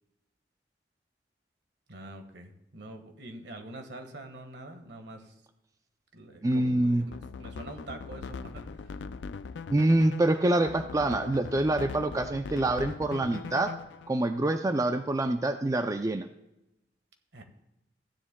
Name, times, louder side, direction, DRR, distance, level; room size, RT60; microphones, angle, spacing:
voice 1, 1.9-5.3 6.1-7.1 7.4-9.1 17.3-17.4, right 1 dB, 70° right, 5 dB, 1.5 m, -45 dB
voice 2, 6.4-7.0 9.7-13.7 14.1-16.3, right 1 dB, 20° right, 7 dB, 0.4 m, -26 dB
sound 1, 7.0-14.1, left 5 dB, 75° left, 0.4 m, -41 dB
15.0 x 9.9 x 2.2 m, 0.89 s
head